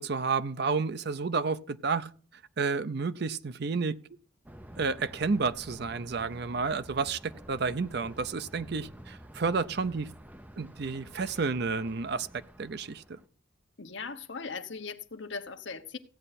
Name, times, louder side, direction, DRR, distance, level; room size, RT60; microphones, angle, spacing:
voice 1, 0.0-2.1 2.6-3.9 4.8-10.1 10.6-13.2, right 4 dB, 50° right, 0.6 m, -31 dB
Thunder, 4.4-13.3, right 1 dB, 10° right, 0.6 m, -49 dB
voice 2, 13.8-16.0, left 4 dB, 60° left, 1.0 m, -39 dB
15.5 x 8.9 x 4.1 m
head